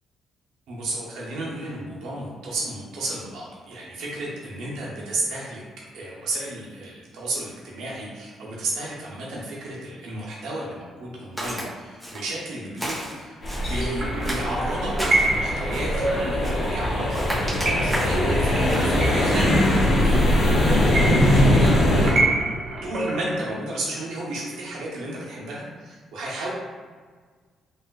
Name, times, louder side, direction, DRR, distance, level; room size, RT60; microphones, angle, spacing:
voice 1, 0.7-5.6 5.9-13.4 13.7-22.2 22.8-26.5, right 1 dB, 85° right, -5 dB, 0.6 m, -32 dB
Walk footsteps, 11.4-11.7 12.0-12.4 12.8-13.8 14.2-15.3 15.7-16.0 16.4-16.8 17.1-18.2 18.7-18.9, equal, ahead, 0.9 m, -33 dB
sound 1, 13.4-22.1, left 1 dB, 50° left, 0.7 m, -21 dB
sound 2, 13.8-23.5, right 2 dB, 45° right, 0.6 m, -28 dB
3.2 x 2.3 x 2.2 m, 1.5 s
cardioid pair, 90°, 0 cm